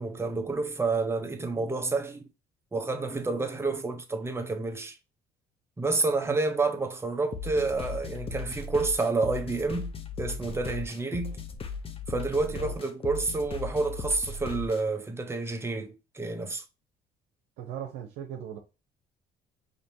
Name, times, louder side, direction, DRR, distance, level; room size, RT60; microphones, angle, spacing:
voice 1, 0.0-2.2 2.7-5.0 5.8-9.9 10.2-11.4 12.1-16.6, right 3 dB, 15° right, 0.9 m, -29 dB
sound 1, 7.3-14.8, left 4 dB, 35° left, 0.8 m, -37 dB
voice 2, 12.5-12.9 17.6-18.6, right 9 dB, 90° right, 0.9 m, -39 dB
5.2 x 2.8 x 2.8 m
cardioid pair, 110°, 17 cm